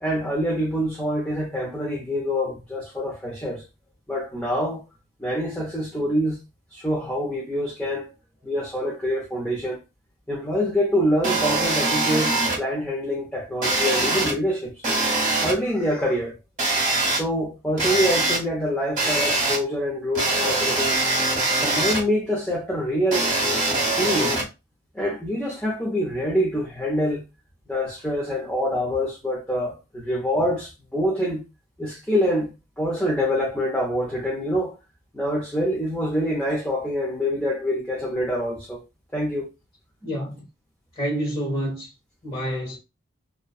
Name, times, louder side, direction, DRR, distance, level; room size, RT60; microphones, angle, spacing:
voice 1, 0.0-3.6 4.1-4.8 5.2-6.4 6.7-8.1 8.4-9.8 10.3-14.7 15.4-16.4 17.1-21.1 21.6-23.3 23.8-24.4 24.9-27.2 27.7-31.4 31.8-34.7 35.1-38.8 39.1-39.5, equal, 10° left, 0.5 m, -25 dB
sound 1, 11.2-12.6 13.6-14.3 14.8-15.5 16.6-17.2 17.8-18.4 19.0-19.6 20.2-22.0 23.1-24.4, right 2 dB, 35° right, 0.9 m, -22 dB
voice 2, 40.0-40.4 40.9-41.9 42.2-42.8, equal, 30° left, 1.3 m, -28 dB
2.5 x 2.1 x 2.3 m
head